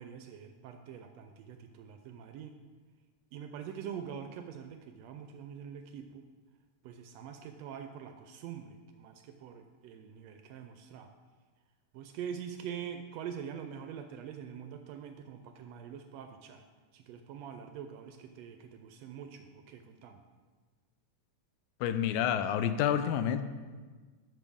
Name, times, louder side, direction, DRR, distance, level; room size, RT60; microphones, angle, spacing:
voice 1, 0.0-2.5 3.3-6.2 6.8-11.1 11.9-16.6 16.9-20.2, right 8 dB, 80° right, 7 dB, 1.5 m, -44 dB
voice 2, 21.8-23.5, left 9 dB, 90° left, 11 dB, 2.0 m, -29 dB
12.0 x 5.9 x 3.6 m, 1.4 s
omnidirectional pair, 3.3 m